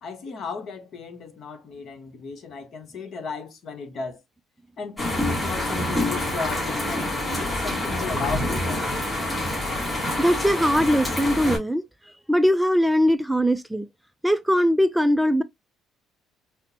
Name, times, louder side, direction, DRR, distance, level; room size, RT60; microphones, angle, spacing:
voice 1, 0.0-4.2 4.8-8.9, left 4 dB, 55° left, 1.1 m, -35 dB
sound 1, 5.0-11.6, left 1 dB, 15° left, 3.1 m, -27 dB
voice 2, 10.2-13.9 14.2-15.4, equal, 5° right, 0.3 m, -21 dB
5.6 x 2.1 x 2.7 m
supercardioid pair, 85°, 0 cm